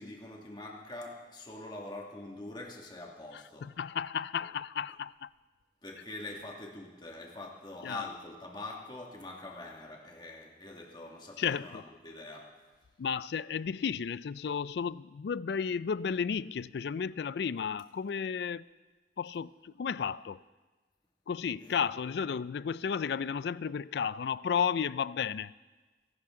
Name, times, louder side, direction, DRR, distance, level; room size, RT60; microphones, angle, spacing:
voice 1, 0.0-3.7 5.8-12.6 21.6-22.0, left 2 dB, 25° left, 0 dB, 1.9 m, -44 dB
voice 2, 3.3-5.3 6.0-6.1 7.8-8.1 11.4-11.8 13.0-18.6 19.2-20.4 21.3-25.5, left 7 dB, 65° left, 19 dB, 0.3 m, -33 dB
26.0 x 11.5 x 3.7 m, 1.3 s
head